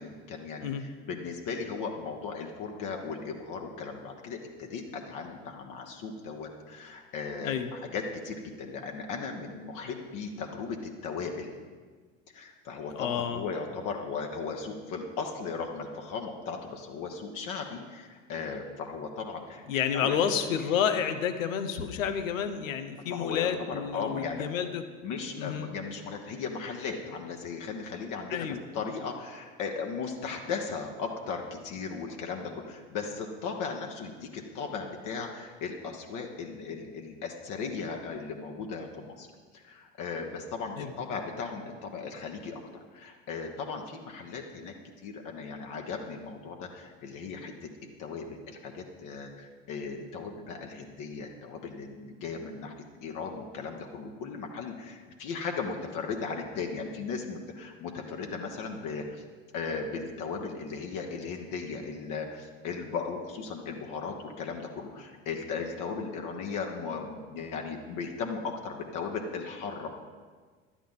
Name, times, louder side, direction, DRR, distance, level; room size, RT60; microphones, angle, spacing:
voice 1, 0.0-11.6 12.3-19.6 19.9-20.2 23.0-24.4 25.0-39.3 39.5-44.7 45.0-47.7 48.0-52.7 53.0-59.2 59.5-69.9, left 5 dB, 50° left, 2 dB, 1.3 m, -37 dB
voice 2, 12.9-13.4 19.7-24.8 25.4-25.7 28.3-28.6 40.8-40.9, left 8 dB, 75° left, 9 dB, 1.0 m, -30 dB
11.5 x 8.7 x 5.6 m, 1.5 s
figure-of-eight pair, 70°, 40 cm